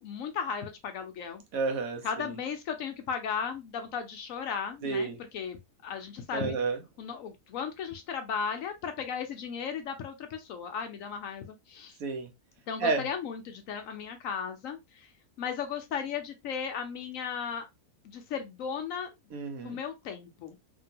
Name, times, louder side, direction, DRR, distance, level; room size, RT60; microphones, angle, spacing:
voice 1, 0.0-1.4 2.0-5.6 5.8-6.5 7.0-12.0 12.7-15.1 15.4-17.7 18.0-19.1 19.6-20.6, left 7 dB, 70° left, 0.8 m, -36 dB
voice 2, 1.5-2.3 4.8-5.2 6.3-6.8 12.0-12.3 12.8-13.1 19.3-19.8, right 4 dB, 65° right, 1.1 m, -31 dB
2.9 x 2.7 x 2.6 m
omnidirectional pair, 1.7 m